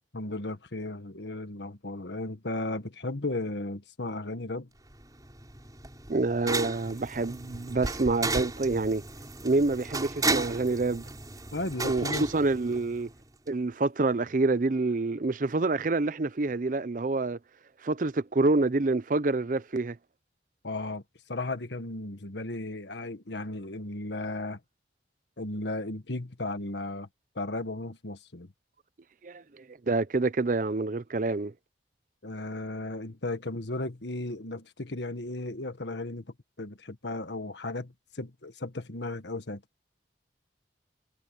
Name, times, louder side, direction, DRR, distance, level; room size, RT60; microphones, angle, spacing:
voice 1, 0.1-4.7 11.5-12.3 20.6-21.0 21.3-24.6 25.4-27.1 27.3-28.5 32.2-36.2 36.6-39.6, left 2 dB, 85° left, 1.6 m, -35 dB
sound 1, 4.9-13.2, right 3 dB, 20° right, 6.1 m, -34 dB
voice 2, 6.1-9.0 9.4-11.0 11.8-13.1 13.5-17.4 17.8-20.0 29.2-31.5, right 3 dB, 50° right, 0.6 m, -27 dB
head